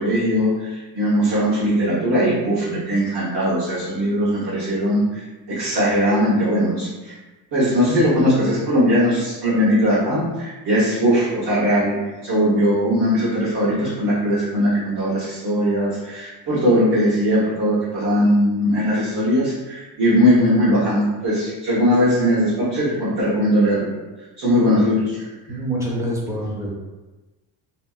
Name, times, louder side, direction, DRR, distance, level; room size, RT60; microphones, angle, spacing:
voice 1, 0.0-7.1 7.5-23.9 24.4-25.0, equal, 75° right, -10 dB, 1.1 m, -19 dB
voice 2, 24.4-24.8 25.5-26.7, right 1 dB, 10° right, -5 dB, 0.5 m, -26 dB
2.8 x 2.7 x 2.3 m, 1.1 s
cardioid pair, 160°, 38 cm